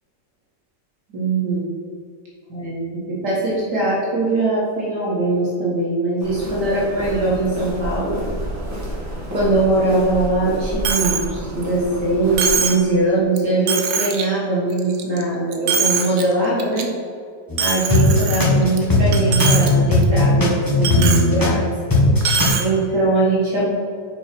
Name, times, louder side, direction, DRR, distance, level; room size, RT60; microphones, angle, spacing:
voice 1, 1.1-1.6 2.5-2.8 3.1-8.2 9.3-16.9 17.6-21.6 22.6-23.7, right 2 dB, 70° right, -6 dB, 1.9 m, -21 dB
Walk footsteps, 6.2-12.5, equal, 10° right, 1.6 m, -30 dB
Coin (dropping), 10.8-11.3 11.6-11.7 12.4-12.8 13.4-13.5 13.7-14.2 14.7-15.2 15.5-16.2 16.6-16.8 17.6-18.8 19.1-19.7 20.0-20.1 20.8-21.3 22.2-22.7, right 6 dB, 85° right, 1.5 m, -22 dB
sound 1, 17.5-17.6 17.9-21.6 21.9-22.5, left 1 dB, 15° left, 1.2 m, -17 dB
6.8 x 4.8 x 4.4 m, 2.3 s
omnidirectional pair, 1.9 m